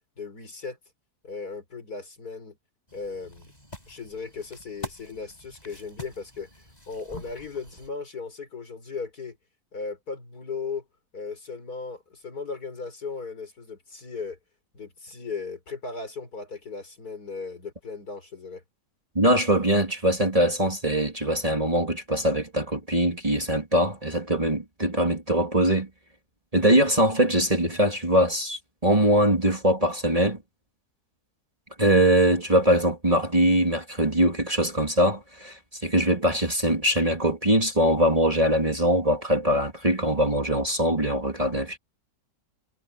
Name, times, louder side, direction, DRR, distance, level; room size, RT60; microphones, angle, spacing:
voice 1, 0.2-0.8 1.2-2.6 2.9-3.5 3.9-6.5 6.9-9.4 9.7-10.8 11.1-14.4 14.7-18.6, left 4 dB, 70° left, 5.2 m, -37 dB
sound 1, 2.9-7.9, left 1 dB, 25° left, 7.1 m, -44 dB
voice 2, 19.1-25.9 26.5-30.4 31.8-41.8, right 1 dB, 20° right, 2.7 m, -22 dB
omnidirectional pair, 1.7 m